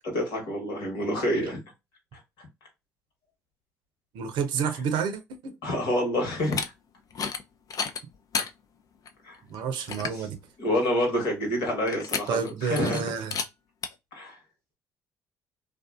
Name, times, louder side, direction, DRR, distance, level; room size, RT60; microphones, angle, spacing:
voice 1, 0.1-1.6 2.1-2.2 5.6-6.6 9.2-9.3 10.1-10.2 10.6-13.0 14.1-14.4, left 1 dB, 70° left, 1.3 m, -27 dB
voice 2, 4.1-5.6 9.5-10.4 12.3-13.3, right 6 dB, 65° right, 0.6 m, -30 dB
sound 1, 6.4-6.7 7.1-7.4 7.7-8.5 9.1-9.2 9.5-9.6 9.9-10.2 11.9-12.5 12.8-13.0 13.3-13.5 13.8-13.9, left 5 dB, 45° left, 0.5 m, -31 dB
2.5 x 2.3 x 2.4 m
hypercardioid pair, 50°, 9 cm